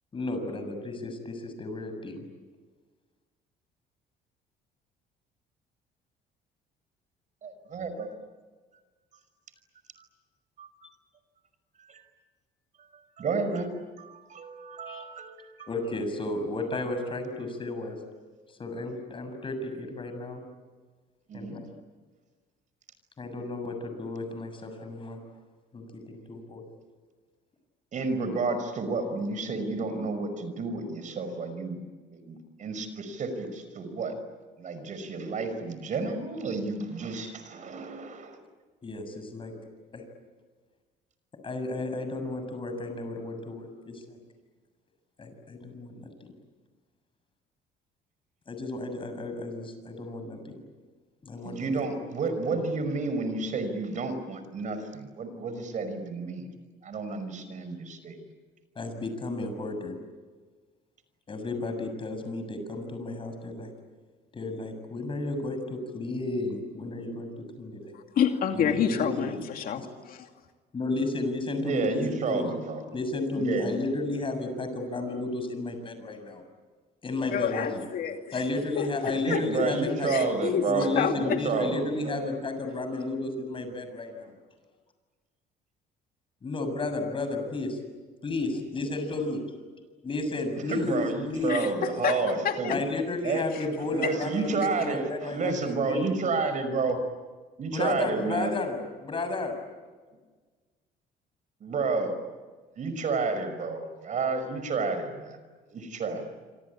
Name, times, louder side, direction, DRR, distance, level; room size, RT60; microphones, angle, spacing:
voice 1, 0.1-2.2 14.9-15.0 15.7-18.0 18.6-20.4 21.3-21.7 23.2-25.2 25.7-26.6 38.8-39.5 39.9-40.0 41.4-44.2 45.2-46.3 48.5-50.6 51.2-51.7 58.7-60.0 61.3-63.7 64.3-67.9 68.5-69.4 69.7-69.9 70.7-72.5 72.9-76.4 77.0-77.8 78.3-80.3 80.7-84.3 86.4-87.8 88.2-89.4 90.0-91.6 92.7-96.1 97.7-98.8 99.0-99.5, left 2 dB, 30° left, 7 dB, 7.0 m, -33 dB
voice 2, 7.4-8.1 10.6-10.7 11.8-12.0 13.2-13.7 14.0-15.7 21.3-21.6 27.9-31.8 32.3-34.1 34.6-38.4 51.4-56.4 56.8-58.2 71.6-72.8 73.4-73.7 79.3-82.3 90.7-92.8 93.2-93.5 93.9-97.0 97.6-98.5 101.6-102.1 102.8-105.4 105.7-106.3, right 4 dB, 50° right, 10 dB, 5.5 m, -31 dB
voice 3, 67.9-70.3 77.3-78.4 78.7-79.7 80.1-80.7 81.0-81.4 91.5-92.8 94.0-94.1, left 8 dB, 60° left, 5 dB, 2.5 m, -29 dB
27.0 x 26.0 x 8.6 m, 1.4 s
cardioid pair, 110°, 17 cm